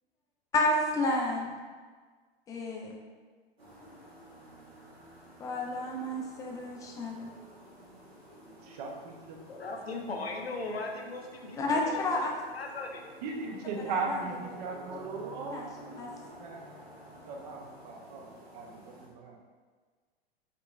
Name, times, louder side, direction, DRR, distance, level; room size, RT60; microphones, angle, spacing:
voice 1, 0.5-1.5 2.5-3.0 5.4-7.3 11.6-12.3 13.8-14.5 15.5-15.7 16.0-16.1, left 2 dB, 10° left, 0 dB, 0.4 m, -31 dB
sound 1, 3.6-19.1, equal, 80° right, 1.1 m, -52 dB
voice 2, 8.6-9.4 13.2-15.6 15.9-16.0 16.4-16.6 17.3-19.4, right 4 dB, 45° right, 1 dB, 0.6 m, -38 dB
voice 3, 9.5-12.0 12.5-13.1, left 3 dB, 80° left, 2 dB, 0.6 m, -38 dB
5.1 x 2.8 x 2.3 m, 1.5 s
figure-of-eight pair, 95°, 30 cm